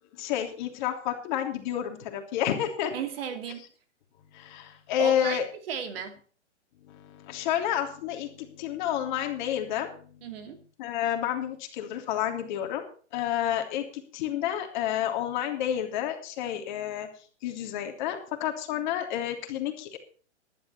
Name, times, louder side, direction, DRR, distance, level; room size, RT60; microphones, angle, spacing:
voice 1, 0.1-2.9 4.3-5.4 6.9-10.1 10.8-12.9 13.1-17.1 17.4-20.0, left 10 dB, 40° left, 5 dB, 3.2 m, -30 dB
voice 2, 2.9-3.7 5.0-5.4 5.7-6.2 10.2-10.6, right 7 dB, 55° right, 7 dB, 2.8 m, -34 dB
15.0 x 12.0 x 4.4 m, 0.41 s
hypercardioid pair, 140°, 35 cm